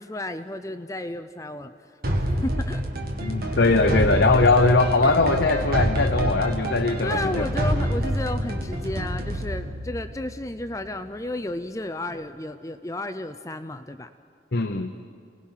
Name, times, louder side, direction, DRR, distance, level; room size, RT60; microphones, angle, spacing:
voice 1, 0.0-1.7 2.4-2.8 7.0-14.1, left 1 dB, 15° left, 10 dB, 0.5 m, -32 dB
sound 1, 2.0-10.9, equal, 50° right, 1.9 m, -27 dB
voice 2, 3.2-7.4 14.5-14.9, left 3 dB, 70° left, 5 dB, 0.9 m, -21 dB
28.5 x 19.5 x 5.7 m, 2.2 s
head